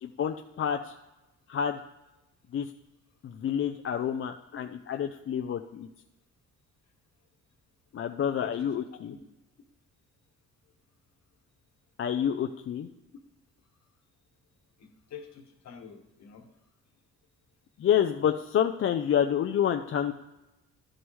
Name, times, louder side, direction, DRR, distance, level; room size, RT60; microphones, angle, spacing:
voice 1, 0.0-0.9 1.5-1.8 2.5-2.7 3.2-5.9 7.9-9.1 12.0-12.9 17.8-20.1, left 9 dB, 45° left, 5 dB, 0.5 m, -28 dB
voice 2, 8.4-8.8 9.1-9.2 14.8-16.4, left 7 dB, 65° left, 4 dB, 1.4 m, -46 dB
12.0 x 6.2 x 3.2 m, 1.0 s
cardioid pair, 90°, 30 cm